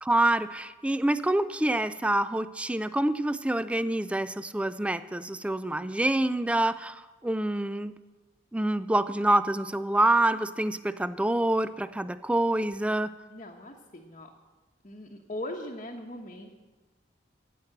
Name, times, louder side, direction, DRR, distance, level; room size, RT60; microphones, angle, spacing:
voice 1, 0.0-6.9 7.2-7.9 8.5-13.1, right 1 dB, 5° right, 14 dB, 0.3 m, -26 dB
voice 2, 12.5-12.9 13.3-14.3 14.8-16.5, left 1 dB, 35° left, -1 dB, 1.0 m, -40 dB
15.5 x 5.9 x 8.6 m, 1.3 s
head